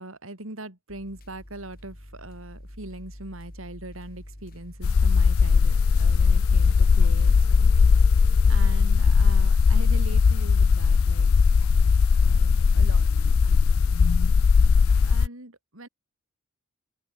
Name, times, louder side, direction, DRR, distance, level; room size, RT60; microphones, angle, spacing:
voice 1, 0.0-7.7 8.2-11.3 12.2-13.1 13.4-13.9 15.0-15.9, right 1 dB, 70° right, 4.0 m, -41 dB
sound 1, 0.9-12.5, equal, 45° left, 3.9 m, -48 dB
sound 2, 4.8-15.3, left 5 dB, 75° left, 0.5 m, -19 dB
open air
head